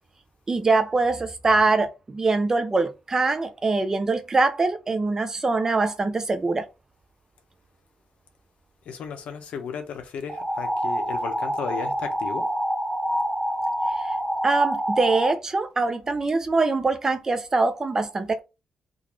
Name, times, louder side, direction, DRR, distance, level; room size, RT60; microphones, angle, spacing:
voice 1, 0.5-6.6 14.0-14.2 14.4-18.4, right 3 dB, 25° right, 0.5 m, -23 dB
voice 2, 8.8-12.5, left 7 dB, 75° left, 0.8 m, -35 dB
sound 1, 10.3-15.3, equal, 5° left, 1.0 m, -27 dB
3.8 x 2.5 x 3.1 m
wide cardioid pair, 145°, 2 cm